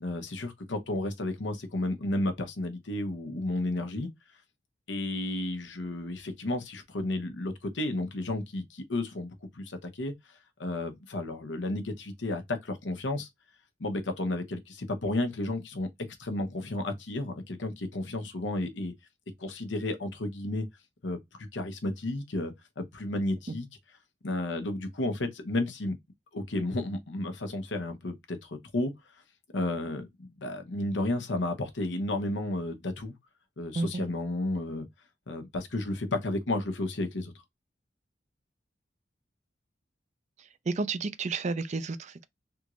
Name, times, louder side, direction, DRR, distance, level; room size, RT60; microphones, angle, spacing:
voice 1, 0.0-4.1 4.9-10.1 10.6-13.3 13.8-15.9 16.2-18.9 19.4-20.7 21.0-21.2 21.5-23.7 24.2-26.0 26.3-28.9 29.5-33.1 33.6-34.9 35.3-37.3, left 2 dB, 90° left, 0.9 m, -32 dB
voice 2, 40.7-42.3, right 3 dB, 40° right, 0.4 m, -31 dB
3.5 x 3.1 x 2.4 m
head